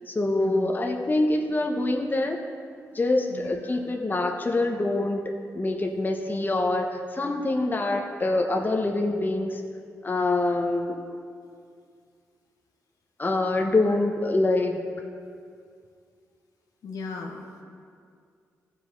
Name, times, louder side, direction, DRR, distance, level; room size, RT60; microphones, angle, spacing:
voice 1, 0.1-2.4 2.9-9.6 10.0-11.0 13.2-14.8, left 2 dB, 30° left, 3 dB, 0.9 m, -25 dB
voice 2, 3.3-3.9 13.6-13.7 16.8-17.4, left 4 dB, 75° left, 1 dB, 1.0 m, -38 dB
14.5 x 5.0 x 4.0 m, 2.3 s
cardioid pair, 55°, 6 cm